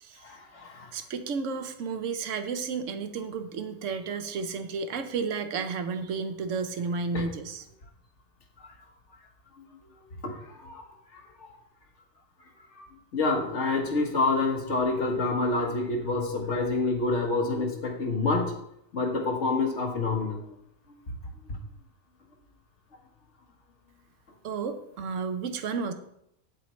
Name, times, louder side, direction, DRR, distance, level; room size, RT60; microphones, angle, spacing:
voice 1, 0.2-0.9 7.1-7.3 10.2-10.9 11.1-11.6 12.7-12.9 13.1-18.6 18.9-20.5, left 3 dB, 65° left, 2 dB, 1.6 m, -28 dB
voice 2, 0.9-7.6 24.4-25.9, right 5 dB, 80° right, 9 dB, 1.1 m, -32 dB
8.4 x 7.4 x 3.1 m, 0.77 s
omnidirectional pair, 1.3 m